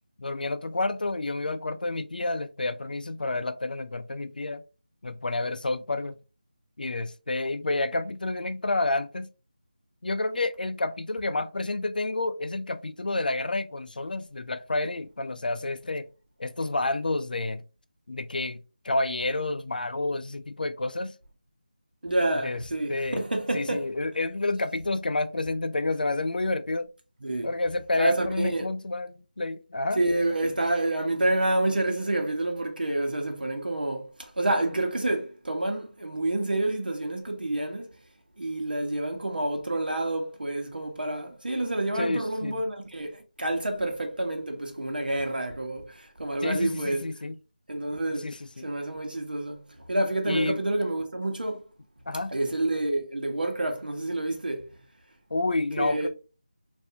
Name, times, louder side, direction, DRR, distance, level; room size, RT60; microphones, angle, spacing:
voice 1, 0.2-4.6 5.0-6.2 6.8-9.3 10.0-16.1 16.4-17.6 18.1-21.1 22.4-22.6 22.9-23.2 23.5-26.9 27.4-30.0 41.9-42.6 46.4-47.3 48.2-48.7 50.3-50.6 52.1-52.3 55.3-56.1, left 2 dB, 70° left, 0.4 m, -29 dB
voice 2, 22.0-23.9 27.2-27.5 28.0-28.7 29.9-37.9 38.4-47.1 47.7-48.3 48.6-51.6 52.3-54.6 55.8-56.1, right 1 dB, 85° right, 1.0 m, -28 dB
3.5 x 2.6 x 2.7 m
figure-of-eight pair, 175°, 5 cm